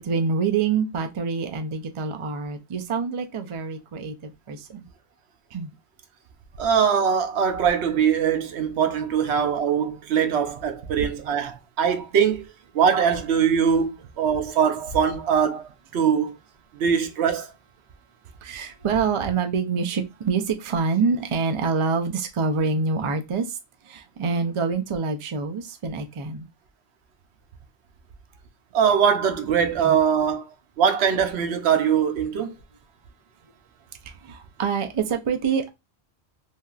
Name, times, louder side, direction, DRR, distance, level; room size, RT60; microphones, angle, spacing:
voice 1, 0.0-4.9 5.5-5.7 18.4-23.6 23.8-26.5 29.8-29.9 34.1-35.7, right 5 dB, 50° right, 0.3 m, -26 dB
voice 2, 6.6-12.4 12.7-16.4 16.7-17.5 28.7-30.5 30.8-32.6, right 7 dB, 75° right, 0.9 m, -22 dB
3.3 x 2.6 x 2.3 m
omnidirectional pair, 1.1 m